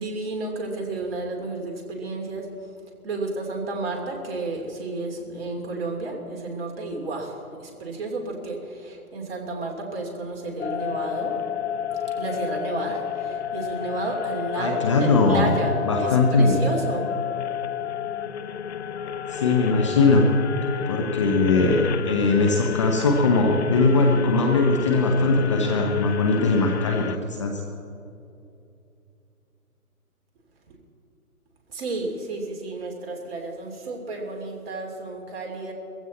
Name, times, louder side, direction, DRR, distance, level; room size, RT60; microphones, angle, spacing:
voice 1, 0.0-2.5 3.0-11.3 12.2-17.0 31.7-35.7, right 2 dB, 40° right, 1 dB, 2.8 m, -32 dB
sound 1, 10.6-27.2, left 8 dB, 50° left, 0.5 m, -30 dB
voice 2, 14.6-15.5 15.9-16.6 19.3-20.3 20.9-27.6, left 3 dB, 20° left, 1 dB, 0.7 m, -20 dB
20.0 x 15.5 x 4.2 m, 2.7 s
figure-of-eight pair, 150°, 44 cm